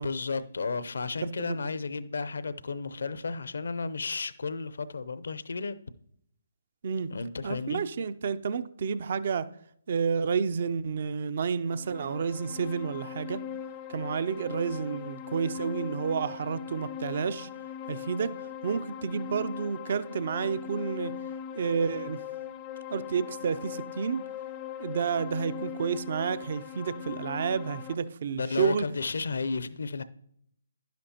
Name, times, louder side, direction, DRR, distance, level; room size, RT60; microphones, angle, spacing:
voice 1, 0.0-5.8 7.1-7.8 28.3-30.0, left 4 dB, 70° left, 0.6 m, -33 dB
voice 2, 1.2-1.6 6.8-7.1 7.4-9.5 9.9-13.4 13.9-17.5 17.9-18.3 18.6-21.1 21.6-22.2 22.9-24.2 24.8-28.8, right 6 dB, 50° right, 0.5 m, -30 dB
sound 1, 11.6-28.0, left 9 dB, 25° left, 0.5 m, -40 dB
11.0 x 10.5 x 2.9 m
figure-of-eight pair, 145°, 0 cm